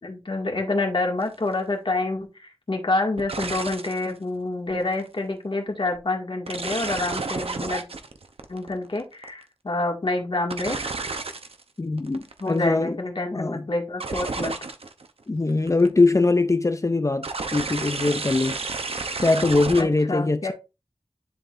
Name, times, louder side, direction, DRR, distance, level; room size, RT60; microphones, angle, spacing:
voice 1, 0.0-7.8 8.5-10.8 12.4-14.6 19.8-20.5, left 2 dB, 60° left, 2.0 m, -27 dB
sound 1, 1.2-1.4 3.2-4.1 4.7-5.1 6.5-9.4 10.5-11.6 12.0-12.6 14.0-15.1 15.5-16.0 17.2-19.8, right 3 dB, 75° right, 0.8 m, -31 dB
voice 2, 11.8-13.0 13.3-13.7 15.3-18.6 19.2-20.5, left 3 dB, 30° left, 0.5 m, -22 dB
10.5 x 3.9 x 2.6 m
wide cardioid pair, 70°, 10 cm